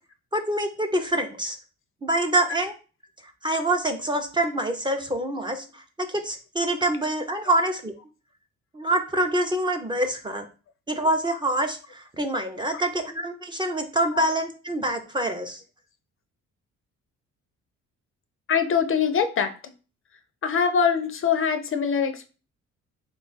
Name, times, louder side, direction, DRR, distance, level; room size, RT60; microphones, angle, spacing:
voice 1, 0.3-1.6 2.0-2.7 3.4-7.9 8.7-10.5 10.9-15.6, right 1 dB, 15° right, 5 dB, 0.5 m, -26 dB
voice 2, 18.5-19.5 20.4-22.3, left 6 dB, 45° left, 9 dB, 0.5 m, -23 dB
3.4 x 2.3 x 4.0 m, 0.34 s
cardioid pair, 90°, 30 cm